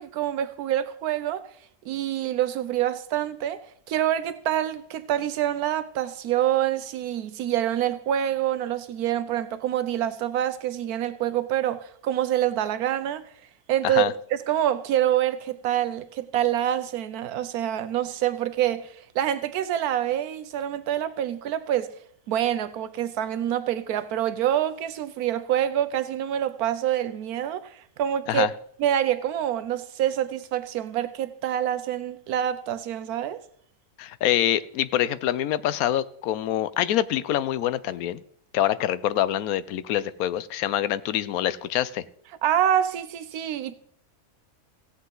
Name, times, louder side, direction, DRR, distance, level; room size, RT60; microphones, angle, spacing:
voice 1, 0.0-1.4 1.9-3.6 3.9-13.3 13.7-21.9 22.3-28.5 28.8-33.4 42.4-43.7, right 11 dB, 80° right, 1.1 m, -26 dB
voice 2, 34.0-38.2 38.5-42.0, left 12 dB, 75° left, 1.0 m, -25 dB
16.0 x 8.0 x 3.9 m
omnidirectional pair, 1.6 m